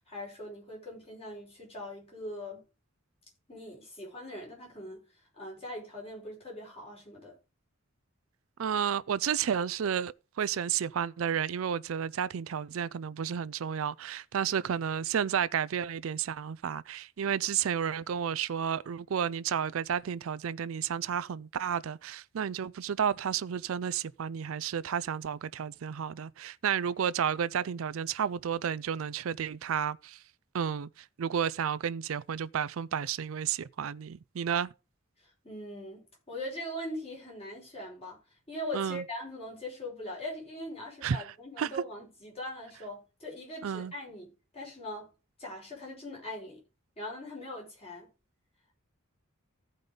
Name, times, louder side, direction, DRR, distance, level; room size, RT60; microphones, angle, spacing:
voice 1, 0.1-2.6 3.5-5.0 5.3-7.3 35.4-38.2 38.5-45.1 45.4-46.6 47.0-48.1, left 1 dB, 30° left, 5.1 m, -41 dB
voice 2, 8.6-30.2 30.5-30.9 31.2-34.7 38.7-39.0 41.0-41.2 41.6-41.7 43.6-43.9, right 8 dB, 75° right, 0.4 m, -31 dB
15.0 x 5.2 x 3.8 m
head